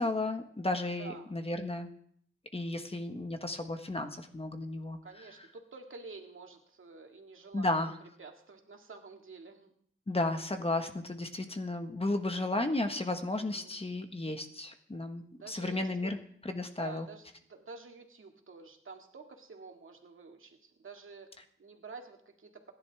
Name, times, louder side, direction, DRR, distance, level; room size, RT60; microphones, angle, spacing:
voice 1, 0.0-1.9 2.5-5.0 7.5-7.9 10.1-16.2 16.4-17.1, left 2 dB, 30° left, 6 dB, 1.5 m, -33 dB
voice 2, 5.0-7.9 8.2-9.7 13.3-13.8 15.4-16.1 16.8-22.7, right 4 dB, 80° right, 3 dB, 2.1 m, -49 dB
27.0 x 11.0 x 3.5 m, 0.63 s
wide cardioid pair, 95°, 21 cm